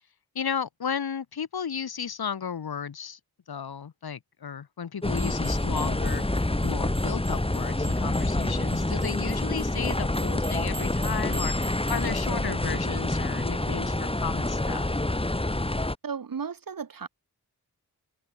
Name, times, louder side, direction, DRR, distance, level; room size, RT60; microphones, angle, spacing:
voice 1, 0.3-3.2 3.5-6.2 6.6-14.9, left 7 dB, 75° left, 1.6 m, -34 dB
sound 1, 5.0-16.0, left 1 dB, 15° left, 2.5 m, -27 dB
sound 2, 5.1-12.3, right 3 dB, 30° right, 5.6 m, -45 dB
voice 2, 16.0-17.1, right 6 dB, 65° right, 1.7 m, -34 dB
open air
wide cardioid pair, 100°, 38 cm